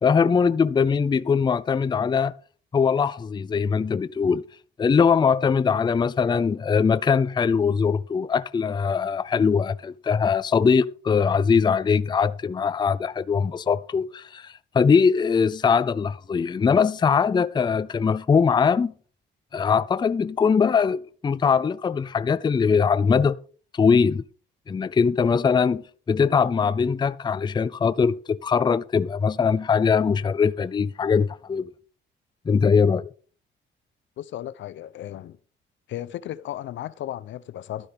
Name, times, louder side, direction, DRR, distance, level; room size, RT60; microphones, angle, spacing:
voice 1, 0.0-2.3 2.7-4.4 4.8-18.9 19.5-23.4 23.7-24.2 24.7-25.8 26.1-31.7 32.5-33.1, left 6 dB, 20° left, 0.4 m, -21 dB
voice 2, 34.2-35.4 35.9-37.9, left 12 dB, 70° left, 0.6 m, -35 dB
12.0 x 9.9 x 3.5 m
cardioid pair, 90°, 20 cm